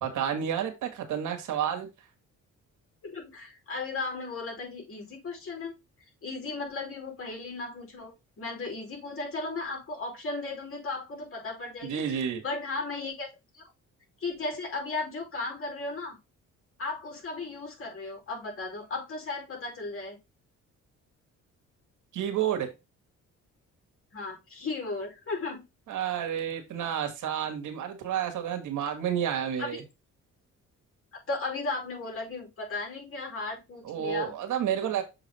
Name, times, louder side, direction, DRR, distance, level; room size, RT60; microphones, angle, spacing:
voice 1, 0.0-1.9 11.8-12.4 22.1-22.7 25.9-29.8 33.8-35.0, right 9 dB, 80° right, 5 dB, 2.0 m, -30 dB
voice 2, 3.0-5.7 6.2-13.3 13.5-13.7 14.2-16.2 16.8-20.2 24.1-25.6 29.6-29.8 31.1-34.3, left 3 dB, 45° left, 1 dB, 5.2 m, -35 dB
7.4 x 4.0 x 4.4 m, 0.24 s
cardioid pair, 90°, 30 cm